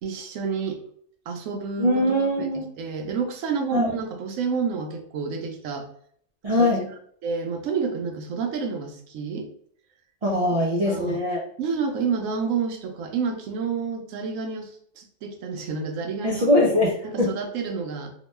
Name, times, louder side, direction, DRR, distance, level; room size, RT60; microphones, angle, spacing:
voice 1, 0.0-0.8 1.3-2.0 2.4-5.9 6.6-6.7 7.2-9.5 10.7-11.2 11.6-14.7 15.0-16.5 17.0-18.1, right 5 dB, 85° right, 4 dB, 1.0 m, -29 dB
voice 2, 1.8-2.7 3.7-3.9 6.4-6.9 10.2-11.4 16.2-17.4, left 1 dB, 65° right, -3 dB, 0.3 m, -22 dB
2.9 x 2.1 x 3.1 m, 0.62 s
omnidirectional pair, 1.3 m